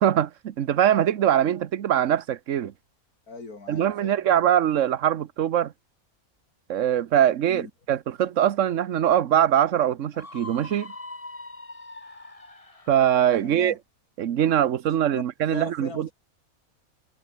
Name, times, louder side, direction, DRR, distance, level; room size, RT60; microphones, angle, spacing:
voice 1, 0.0-2.7 3.7-5.7 6.7-10.9 12.9-13.7 14.2-16.1, right 10 dB, 60° right, 1.2 m, -22 dB
voice 2, 3.3-4.1 7.5-7.7 13.4-13.8 15.1-15.2 15.5-16.1, left 3 dB, 90° left, 4.1 m, -39 dB
Screaming, 10.1-13.1, left 2 dB, 25° left, 2.2 m, -42 dB
omnidirectional pair, 1.5 m